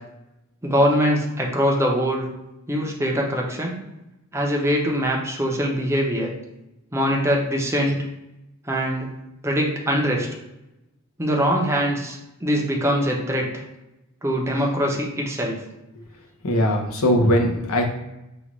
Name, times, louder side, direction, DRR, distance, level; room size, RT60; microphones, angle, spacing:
voice 1, 0.6-2.3 2.7-3.7 4.3-6.3 6.9-8.0 8.7-9.1 9.4-10.3 11.2-13.6 14.2-15.6, equal, 15° right, -1 dB, 0.6 m, -22 dB
voice 2, 16.4-17.8, equal, 80° left, 2 dB, 0.8 m, -20 dB
5.1 x 2.4 x 3.0 m, 0.93 s
head